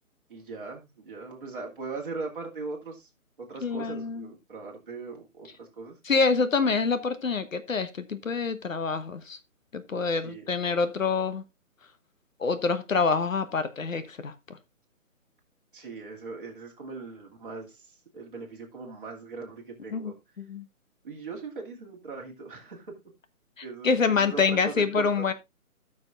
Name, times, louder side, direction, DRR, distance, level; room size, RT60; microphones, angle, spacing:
voice 1, 0.3-3.1 3.4-6.0 10.2-10.5 15.7-20.1 21.0-22.9 23.6-25.3, right 4 dB, 35° right, 2.4 m, -40 dB
voice 2, 3.6-4.3 6.0-9.4 9.7-11.4 12.4-14.3 19.9-20.6 23.8-25.3, left 4 dB, 65° left, 1.1 m, -26 dB
17.0 x 6.2 x 2.4 m
hypercardioid pair, 180°, 43 cm